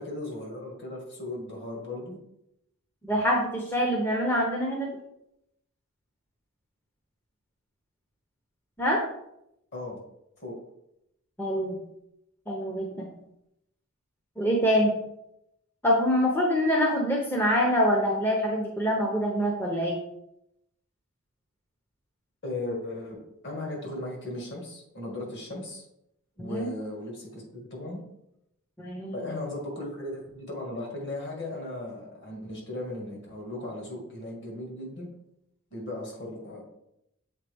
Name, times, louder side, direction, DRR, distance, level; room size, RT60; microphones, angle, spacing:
voice 1, 0.0-2.2 9.7-10.0 10.4-10.6 22.4-25.9 26.4-27.4 27.7-28.0 29.1-35.1 35.7-36.6, left 1 dB, 50° left, -1 dB, 1.8 m, -36 dB
voice 2, 3.0-4.9 8.8-9.0 11.4-11.8 12.5-13.1 14.4-14.9 15.8-20.0 26.4-26.7 28.8-29.3, equal, 10° left, -1 dB, 0.7 m, -25 dB
7.3 x 3.7 x 3.4 m, 0.82 s
head